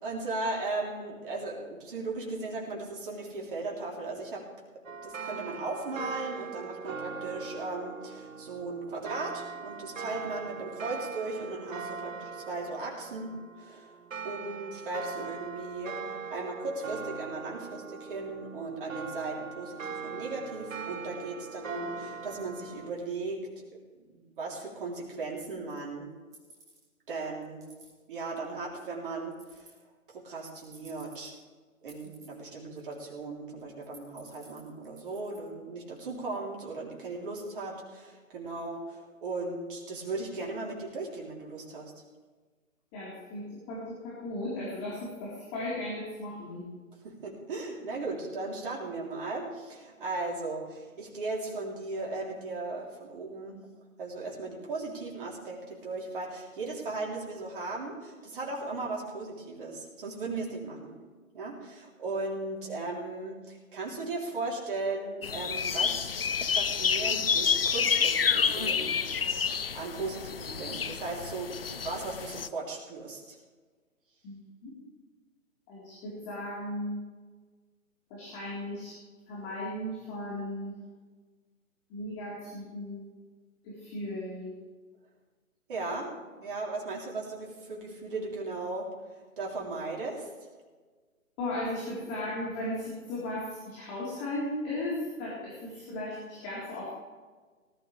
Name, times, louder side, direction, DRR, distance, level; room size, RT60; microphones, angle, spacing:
voice 1, 0.0-4.4 5.0-14.0 14.2-16.0 16.3-23.6 23.9-26.1 27.1-27.6 28.1-29.7 30.1-31.4 31.8-41.9 47.0-53.6 54.0-61.0 61.3-69.0 69.7-73.4 85.7-86.1 86.4-88.9 89.4-90.3, right 3 dB, 40° right, -1 dB, 3.4 m, -37 dB
sound 1, 4.8-22.9, right 5 dB, 65° right, 0.9 m, -41 dB
steel wrist watch bracelet, 25.7-25.8 26.3-26.9 27.4-27.9 29.3-29.8 30.6-31.4 31.9-32.4 32.8-33.2 33.6-35.4, right 3 dB, 10° right, 1.7 m, -55 dB
voice 2, 42.9-46.6 74.2-74.7 75.7-77.0 78.1-78.9 79.3-80.7 81.9-83.1 83.6-84.5 91.4-96.9, left 1 dB, 20° left, -7 dB, 3.9 m, -36 dB
amazing birds singing in Polish forest rear, 65.2-72.5, left 6 dB, 45° left, 0.4 m, -29 dB
19.0 x 12.0 x 3.4 m, 1.4 s
figure-of-eight pair, 145°, 42 cm